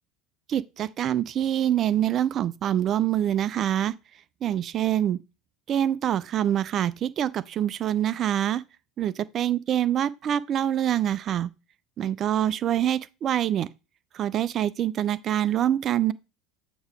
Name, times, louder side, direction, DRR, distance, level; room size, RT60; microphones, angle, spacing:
voice 1, 0.5-3.9 4.4-5.2 5.7-8.6 9.0-11.5 12.0-13.7 14.1-16.1, right 11 dB, 40° right, 0.4 m, -25 dB
8.1 x 3.0 x 4.8 m
figure-of-eight pair, 70°, 0 cm